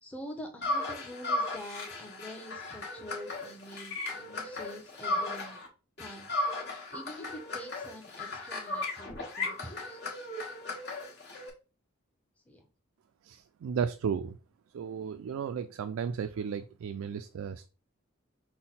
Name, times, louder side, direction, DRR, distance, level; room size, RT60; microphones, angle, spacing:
voice 1, 0.0-5.6 6.0-6.3 6.9-10.0 12.5-12.6, equal, 5° left, 3 dB, 0.7 m, -46 dB
sound 1, 0.6-5.7 6.0-11.5, left 2 dB, 50° left, 1.3 m, -36 dB
voice 2, 13.2-14.4 14.7-17.7, right 7 dB, 85° right, 10 dB, 0.3 m, -34 dB
5.7 x 2.1 x 4.1 m, 0.33 s
head